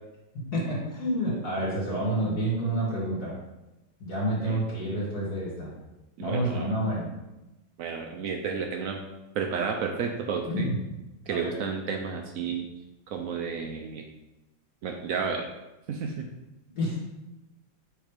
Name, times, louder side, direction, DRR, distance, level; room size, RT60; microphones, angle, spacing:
voice 1, 0.3-3.4 4.0-5.7 6.2-7.1 10.5-10.8 11.2-11.5 16.7-17.0, right 1 dB, 50° left, -6 dB, 2.8 m, -29 dB
voice 2, 6.2-6.8 7.8-9.0 9.4-10.7 11.3-12.7 13.1-14.0 14.8-15.5 15.9-16.3, right 6 dB, 85° right, 3 dB, 0.7 m, -31 dB
6.6 x 3.5 x 5.1 m, 1.0 s
omnidirectional pair, 2.1 m